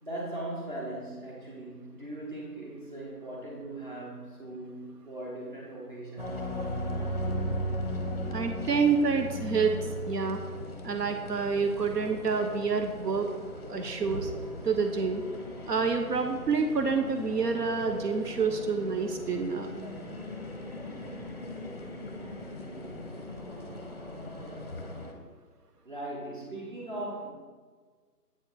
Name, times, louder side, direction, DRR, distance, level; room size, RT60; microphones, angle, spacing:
voice 1, 0.0-6.6 25.8-27.3, right 1 dB, 30° right, -4 dB, 1.1 m, -39 dB
sound 1, 6.2-25.1, equal, 40° left, 0.6 m, -38 dB
voice 2, 8.3-10.4 10.8-13.3 13.7-14.3 14.6-15.2 15.7-19.7, right 5 dB, 80° right, 5 dB, 0.7 m, -28 dB
7.8 x 3.1 x 4.3 m, 1.5 s
figure-of-eight pair, 170°, 47 cm